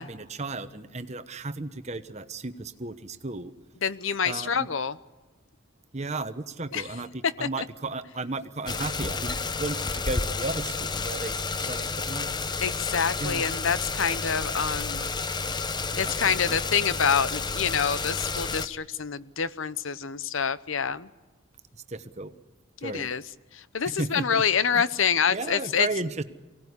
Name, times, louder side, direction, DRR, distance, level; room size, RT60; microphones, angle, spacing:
voice 1, 0.0-3.5 4.2-4.7 5.9-12.5 13.2-13.4 15.9-16.6 21.7-22.3 22.8-23.1 23.9-24.4 24.7-24.8 25.3-26.2, right 2 dB, 35° right, 10 dB, 1.1 m, -34 dB
voice 2, 3.8-5.0 6.7-6.9 7.4-7.7 12.6-15.1 16.0-21.1 22.8-23.2 23.5-25.9, left 7 dB, 75° left, 16 dB, 0.8 m, -27 dB
sound 1, 8.7-18.7, left 4 dB, 20° left, 0.7 m, -30 dB
24.0 x 17.5 x 9.7 m, 1.2 s
head